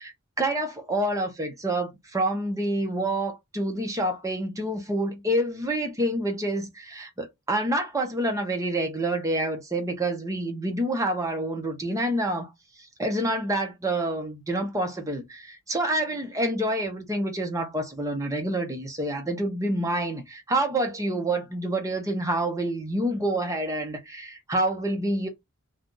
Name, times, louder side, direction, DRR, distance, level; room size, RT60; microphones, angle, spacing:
voice 1, 0.0-12.5 12.8-25.3, right 1 dB, 15° right, 0.8 m, -27 dB
2.6 x 2.4 x 3.7 m
head